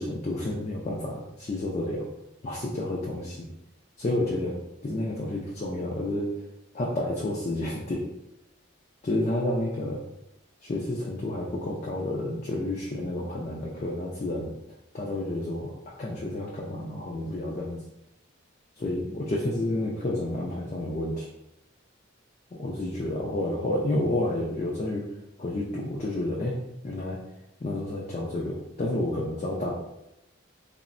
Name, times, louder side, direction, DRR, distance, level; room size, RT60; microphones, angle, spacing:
voice 1, 0.0-2.1 2.4-3.5 4.0-6.3 6.7-8.1 9.0-10.0 10.6-14.5 14.9-15.7 16.0-17.8 18.8-21.3 22.5-25.1 25.4-26.5 26.8-27.2 27.6-29.7, left 1 dB, 35° left, -3 dB, 0.3 m, -30 dB
3.5 x 2.0 x 2.5 m, 0.89 s
head